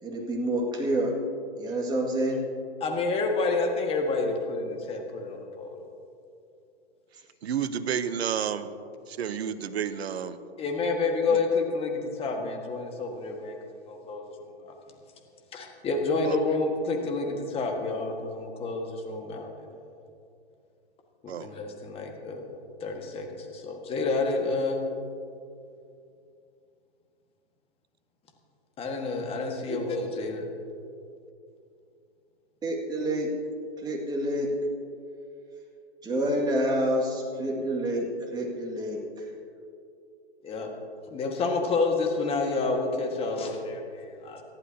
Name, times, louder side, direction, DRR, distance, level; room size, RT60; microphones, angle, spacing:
voice 1, 0.0-1.1 1.6-2.4 29.7-29.8 32.6-33.3 33.8-34.5 36.0-39.3, right 1 dB, 10° right, -1 dB, 2.1 m, -28 dB
voice 2, 2.8-5.9 10.6-13.6 13.9-14.7 15.5-19.9 21.4-24.8 28.8-30.5 40.4-40.7 41.1-44.4, left 3 dB, 15° left, 2 dB, 1.6 m, -29 dB
voice 3, 7.4-8.7 9.1-10.4 11.3-11.4 16.2-16.4 21.3-21.5, right 8 dB, 70° right, 12 dB, 1.0 m, -30 dB
25.5 x 11.5 x 2.9 m, 2.5 s
hypercardioid pair, 130°, 33 cm